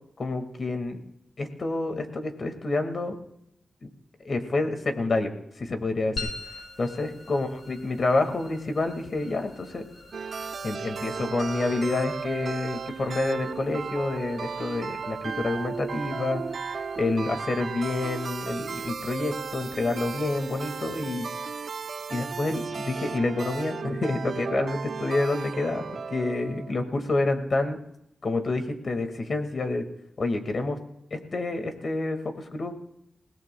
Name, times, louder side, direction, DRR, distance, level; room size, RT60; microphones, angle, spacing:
voice 1, 0.2-1.0 1.4-3.2 3.8-3.9 4.2-5.3 5.6-6.3 6.8-9.8 10.6-21.3 22.1-27.8 28.2-29.9 30.2-30.8 31.1-32.7, left 2 dB, 55° left, 6 dB, 1.8 m, -28 dB
sound 1, 6.2-20.8, left 3 dB, 80° left, 2.3 m, -46 dB
sound 2, 10.1-26.7, right 5 dB, 70° right, 0.5 m, -35 dB
28.0 x 17.5 x 2.3 m, 0.78 s
cardioid pair, 70°, 0 cm